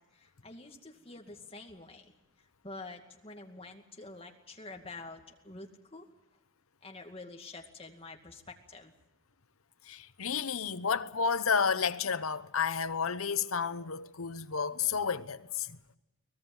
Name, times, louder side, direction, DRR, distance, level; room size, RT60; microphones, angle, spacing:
voice 1, 0.0-6.1 6.8-8.9, left 3 dB, 25° left, 2.3 m, -48 dB
voice 2, 9.9-15.8, left 6 dB, 85° left, 0.9 m, -31 dB
24.0 x 19.0 x 7.2 m
head